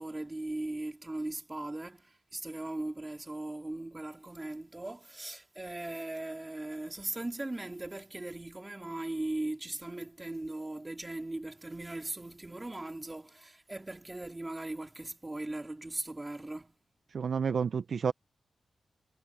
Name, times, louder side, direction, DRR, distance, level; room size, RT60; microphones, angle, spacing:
voice 1, 0.0-16.8, right 2 dB, 20° right, 2.9 m, -39 dB
voice 2, 17.1-18.1, right 6 dB, 65° right, 0.5 m, -30 dB
wide cardioid pair, 95°, 0 cm